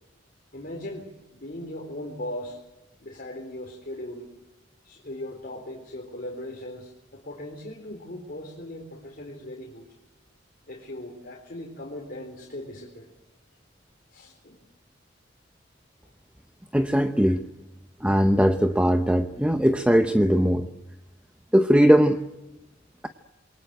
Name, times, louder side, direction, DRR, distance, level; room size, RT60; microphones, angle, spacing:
voice 1, 0.5-1.1 1.3-2.6 3.0-4.3 4.8-9.9 10.7-13.1 14.1-14.6 17.3-17.4, left 1 dB, 50° left, -1 dB, 3.9 m, -38 dB
voice 2, 16.7-17.4 18.0-20.7 21.5-22.2, equal, 5° right, 7 dB, 0.8 m, -20 dB
28.0 x 22.5 x 7.9 m, 0.97 s
head